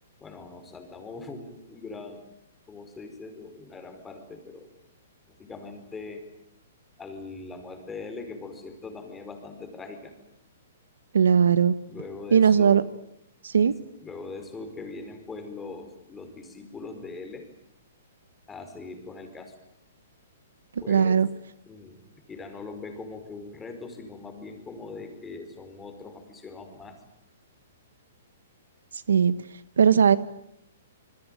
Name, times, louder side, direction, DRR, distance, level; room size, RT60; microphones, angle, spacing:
voice 1, 0.2-2.3 2.7-4.7 5.4-6.2 7.0-10.1 11.9-12.9 13.6-13.7 14.0-17.5 18.5-19.5 20.8-21.2 21.7-22.0 22.3-27.0, left 3 dB, 15° left, 6 dB, 5.2 m, -41 dB
voice 2, 11.1-11.7 12.3-12.8 13.4-13.7 20.9-21.3 29.1-29.3 29.8-30.2, right 7 dB, 85° right, 16 dB, 1.3 m, -18 dB
27.5 x 21.5 x 9.3 m, 0.79 s
hypercardioid pair, 135°, 0 cm